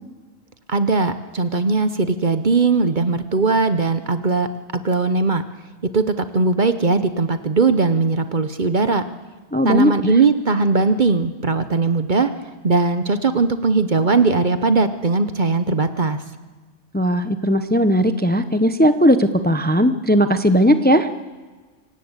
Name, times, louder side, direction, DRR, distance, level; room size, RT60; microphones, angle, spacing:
voice 1, 0.7-4.5 4.7-5.4 5.9-9.0 9.6-12.3 12.6-16.2, right 4 dB, 40° right, 11 dB, 1.1 m, -19 dB
voice 2, 9.5-10.1 16.9-21.1, equal, 10° left, 10 dB, 0.8 m, -17 dB
25.5 x 17.0 x 8.2 m, 1.3 s
omnidirectional pair, 1.3 m